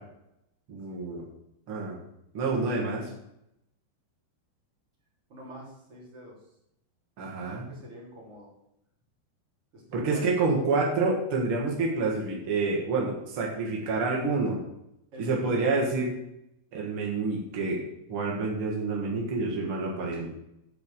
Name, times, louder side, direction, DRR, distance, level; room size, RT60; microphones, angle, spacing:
voice 1, 0.7-1.2 1.7-2.0 2.3-3.1 7.2-7.7 9.9-14.6 15.2-16.1 16.7-17.8 18.1-20.3, right 3 dB, 80° right, -2 dB, 1.2 m, -28 dB
voice 2, 5.3-6.4 7.5-8.5 9.7-10.5 15.1-15.8 19.9-20.3, right 1 dB, 35° right, -5 dB, 3.7 m, -45 dB
9.4 x 5.3 x 6.9 m, 0.82 s
omnidirectional pair, 5.4 m